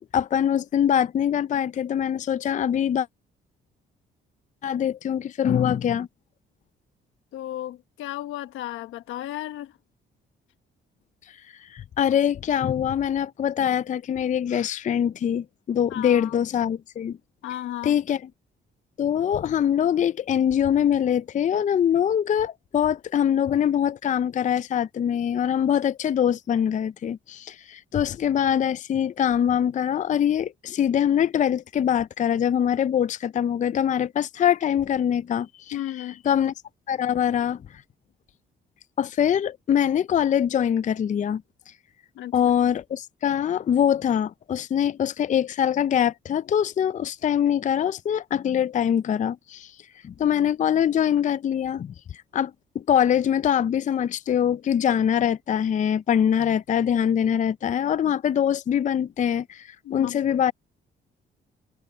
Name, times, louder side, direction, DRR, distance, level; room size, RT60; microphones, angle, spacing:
voice 1, 0.1-3.1 4.6-6.1 11.3-17.2 17.8-18.2 19.0-35.8 36.3-36.5 36.9-37.6 39.0-41.4 42.3-49.7 50.0-60.5, left 9 dB, 40° left, 0.4 m, -23 dB
voice 2, 7.3-9.7 15.9-16.4 17.4-17.9 35.7-36.2 42.1-42.4 59.8-60.2, left 13 dB, 90° left, 1.2 m, -34 dB
cardioid pair, 90°, 20 cm